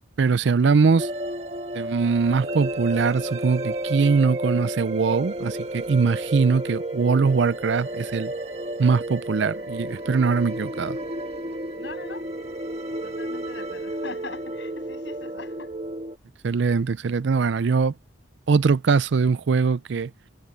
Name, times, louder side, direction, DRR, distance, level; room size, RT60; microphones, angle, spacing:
voice 1, 0.2-1.1 1.7-8.3 8.8-11.0 16.4-17.9 18.5-20.1, right 5 dB, 65° right, 0.4 m, -22 dB
sound 1, 1.0-16.2, right 1 dB, 30° right, 1.5 m, -32 dB
sound 2, 2.4-14.4, right 3 dB, 85° right, 6.6 m, -46 dB
voice 2, 11.8-12.3 13.0-15.7, left 3 dB, 65° left, 7.0 m, -41 dB
head